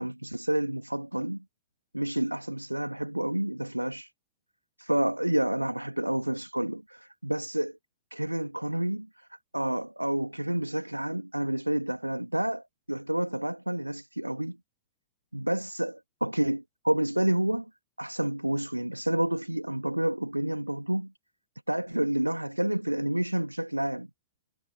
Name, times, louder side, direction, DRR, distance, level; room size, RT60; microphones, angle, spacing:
voice 1, 0.0-1.4 1.9-4.1 4.8-7.8 8.1-9.3 9.5-14.6 15.3-16.0 16.2-17.7 18.0-21.1 21.7-24.1, right 1 dB, 85° right, 2.7 m, -29 dB
figure-of-eight pair, 90°, 0 cm